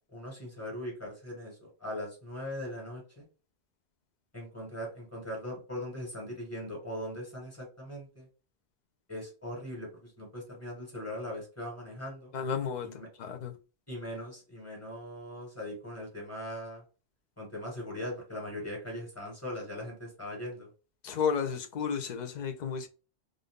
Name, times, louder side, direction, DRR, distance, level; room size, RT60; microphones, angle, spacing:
voice 1, 0.1-3.3 4.3-8.3 9.1-12.3 12.8-13.1 13.9-16.8 17.4-20.7, left 1 dB, 15° left, 1.4 m, -40 dB
voice 2, 12.3-13.6 21.0-22.9, left 7 dB, 55° left, 0.5 m, -33 dB
2.6 x 2.5 x 3.5 m
omnidirectional pair, 1.1 m